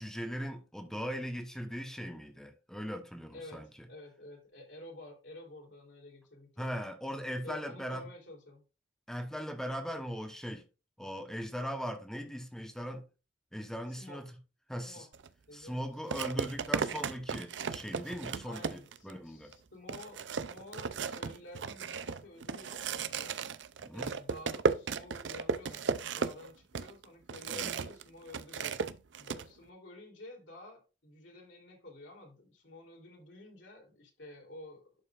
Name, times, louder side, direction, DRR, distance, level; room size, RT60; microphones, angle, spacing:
voice 1, 0.0-3.9 6.6-8.1 9.1-10.6 11.0-13.0 13.5-14.3 14.7-15.1 15.5-19.5 23.8-24.1 27.5-27.7, equal, 5° left, 1.1 m, -39 dB
voice 2, 3.9-6.8 7.4-8.6 13.9-14.2 14.8-15.1 15.5-16.2 18.4-23.4 23.9-28.8 29.2-34.9, left 2 dB, 80° left, 3.4 m, -51 dB
sound 1, 15.1-15.3 16.1-19.1 19.5-19.6 19.9-28.0 28.3-29.4, right 5 dB, 70° right, 0.5 m, -35 dB
11.5 x 5.6 x 2.5 m
head